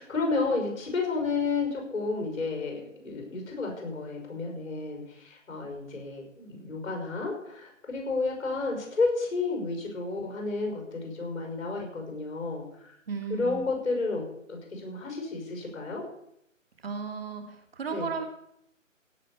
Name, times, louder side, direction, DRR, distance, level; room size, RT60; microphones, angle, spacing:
voice 1, 0.0-13.0 13.3-16.0 17.9-18.1, left 3 dB, 60° left, 2 dB, 5.9 m, -31 dB
voice 2, 13.1-13.6 16.8-18.2, right 5 dB, 45° right, 5 dB, 2.8 m, -34 dB
16.5 x 6.1 x 8.6 m, 0.76 s
hypercardioid pair, 165°, 40 cm